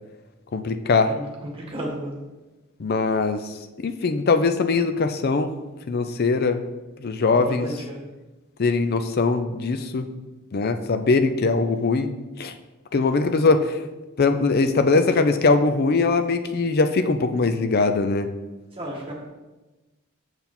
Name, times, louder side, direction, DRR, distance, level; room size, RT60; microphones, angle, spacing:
voice 1, 0.5-1.1 2.8-3.5 3.8-5.5 5.9-6.6 7.0-7.7 8.6-10.1 10.5-12.1 12.4-12.5 12.9-13.8 14.2-18.3, left 3 dB, 50° left, 9 dB, 0.5 m, -21 dB
voice 2, 1.0-2.2 7.3-8.0 18.7-19.3, right 1 dB, 25° right, -1 dB, 1.6 m, -33 dB
7.1 x 5.9 x 4.3 m, 1.1 s
head